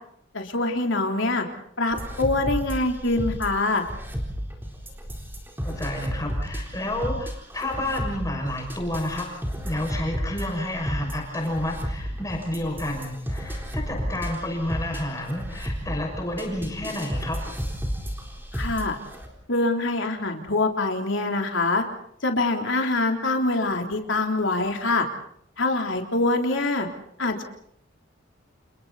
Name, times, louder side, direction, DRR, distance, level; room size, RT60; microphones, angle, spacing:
voice 1, 0.3-1.5 1.8-3.8 18.5-19.0 19.5-21.8 22.2-25.1 25.6-26.9 27.2-27.4, left 2 dB, 75° left, 3 dB, 3.5 m, -24 dB
sound 1, 1.9-19.3, equal, 10° right, 3.9 m, -32 dB
voice 2, 5.6-9.3 9.6-17.4, left 1 dB, 15° left, 1 dB, 6.3 m, -30 dB
29.5 x 29.0 x 4.2 m, 0.67 s
head